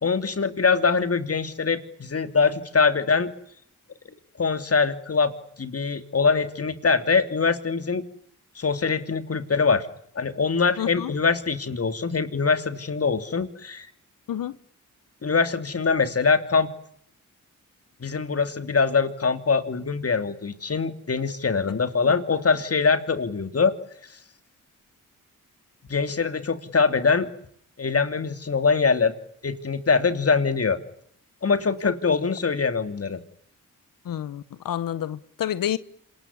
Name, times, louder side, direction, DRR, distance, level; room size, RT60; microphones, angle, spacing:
voice 1, 0.0-3.3 4.4-5.3 5.6-8.0 8.6-9.9 10.1-13.9 15.2-16.7 18.0-23.7 25.9-27.3 27.8-29.1 29.4-30.8 31.4-33.2, left 5 dB, 45° left, 3.0 m, -23 dB
voice 2, 10.8-11.1 14.3-14.5 31.8-31.9 34.0-35.8, left 10 dB, 90° left, 1.1 m, -29 dB
27.0 x 20.5 x 9.8 m
cardioid pair, 80°, 33 cm